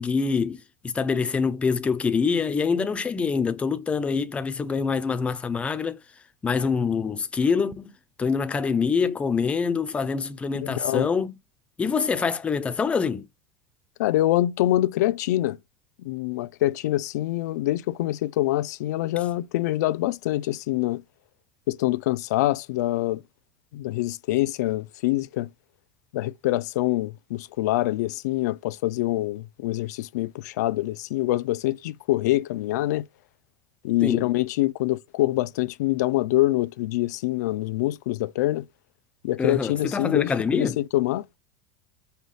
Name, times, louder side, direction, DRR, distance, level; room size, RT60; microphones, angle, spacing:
voice 1, 0.0-6.0 6.4-7.9 8.2-11.3 11.8-13.3 34.0-34.3 39.4-40.8, left 5 dB, 15° left, 0.5 m, -25 dB
voice 2, 10.5-11.1 14.0-15.6 16.0-21.0 21.7-23.2 23.7-25.5 26.1-33.1 33.8-38.7 39.2-41.3, left 16 dB, 80° left, 0.4 m, -25 dB
5.5 x 2.3 x 3.2 m
supercardioid pair, 150°, 9 cm